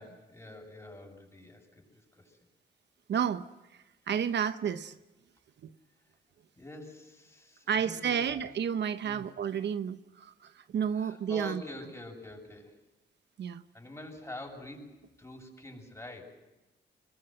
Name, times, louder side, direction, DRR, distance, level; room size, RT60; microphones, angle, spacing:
voice 1, 0.0-2.4 6.6-8.5 9.0-9.3 10.9-12.8 13.7-16.2, left 1 dB, 15° left, 2 dB, 7.7 m, -46 dB
voice 2, 3.1-3.4 4.1-5.0 7.7-11.6 13.4-13.6, right 8 dB, 75° right, 11 dB, 1.0 m, -31 dB
26.0 x 22.5 x 7.9 m, 1.0 s
cardioid pair, 80°, 18 cm